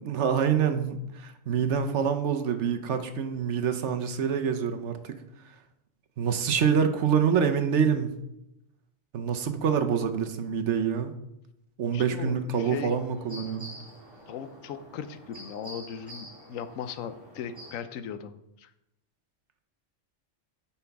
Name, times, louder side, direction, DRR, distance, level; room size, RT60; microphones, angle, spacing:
voice 1, 0.0-5.1 6.2-8.1 9.1-11.1 11.8-13.7, right 7 dB, 65° right, 8 dB, 1.0 m, -26 dB
voice 2, 11.9-12.9 14.3-18.7, left 7 dB, 85° left, 11 dB, 1.0 m, -38 dB
sound 1, 12.6-17.8, equal, 20° right, 2.0 m, -47 dB
9.5 x 5.8 x 3.5 m, 0.85 s
omnidirectional pair, 1.4 m